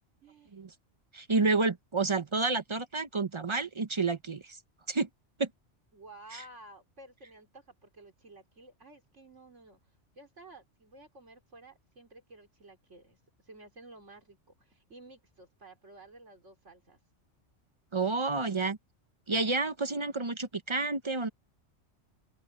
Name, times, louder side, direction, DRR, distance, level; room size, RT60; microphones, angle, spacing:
voice 1, 0.2-0.5 5.9-9.8 10.2-13.2 13.4-17.0, right 2 dB, 85° right, 4.0 m, -53 dB
voice 2, 1.1-4.6 4.9-5.1 5.4-5.5 6.3-6.4 17.9-18.8 19.3-21.3, right 3 dB, 30° right, 0.6 m, -29 dB
open air
omnidirectional pair, 1.2 m